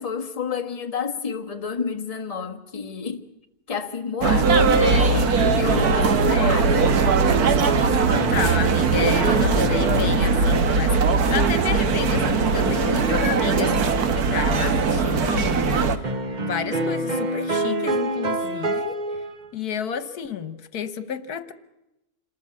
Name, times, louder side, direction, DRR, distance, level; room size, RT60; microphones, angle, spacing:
voice 1, 0.0-3.2 3.7-6.9, left 5 dB, 25° left, 1.4 m, -30 dB
sound 1, 4.2-16.0, right 4 dB, 75° right, 1.8 m, -20 dB
voice 2, 4.7-5.1 5.9-6.6 7.7-19.2 19.5-21.5, left 8 dB, 75° left, 1.7 m, -31 dB
sound 2, 5.8-10.6 11.8-14.1 16.0-19.5, right 2 dB, 30° right, 1.1 m, -28 dB
27.5 x 14.0 x 9.8 m
omnidirectional pair, 1.6 m